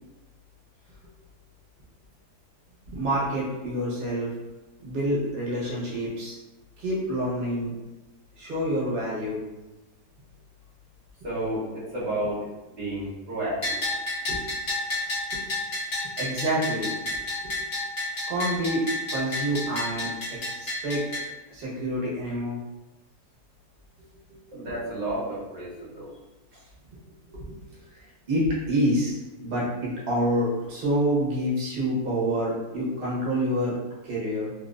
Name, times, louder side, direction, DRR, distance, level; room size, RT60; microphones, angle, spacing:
voice 1, 2.9-4.3 4.8-6.4 6.8-7.7 8.4-9.4 14.3-14.5 15.3-15.4 16.2-16.9 17.4-17.5 18.3-18.8 19.1-20.1 20.5-21.1 21.5-22.6 24.3-24.4 27.3-33.7 34.0-34.5, equal, 40° right, -7 dB, 1.1 m, -27 dB
voice 2, 11.2-12.5 12.8-13.8 24.5-26.1, right 1 dB, 80° right, -10 dB, 1.6 m, -31 dB
Bell, 13.6-21.2, left 1 dB, 40° left, 1.0 m, -31 dB
3.2 x 2.8 x 2.5 m, 1.0 s
omnidirectional pair, 1.7 m